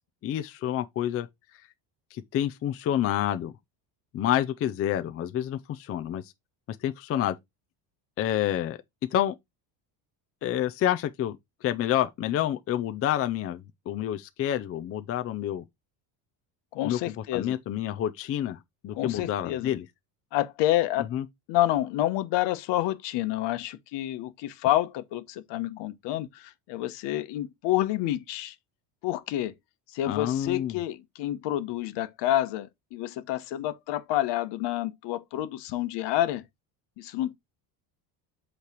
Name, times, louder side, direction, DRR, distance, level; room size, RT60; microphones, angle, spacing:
voice 1, 0.2-1.3 2.1-3.5 4.1-6.2 6.8-7.4 8.2-8.8 9.1-9.3 10.4-11.4 11.6-15.6 16.8-17.0 17.3-18.6 18.8-19.8 21.0-21.2 30.1-30.8, left 11 dB, 30° left, 0.5 m, -28 dB
voice 2, 16.7-17.6 18.9-19.7 20.3-21.1 21.5-28.5 29.0-29.5 29.9-36.4 37.0-37.3, left 14 dB, 65° left, 1.1 m, -28 dB
8.3 x 3.3 x 4.5 m
cardioid pair, 150°, 46 cm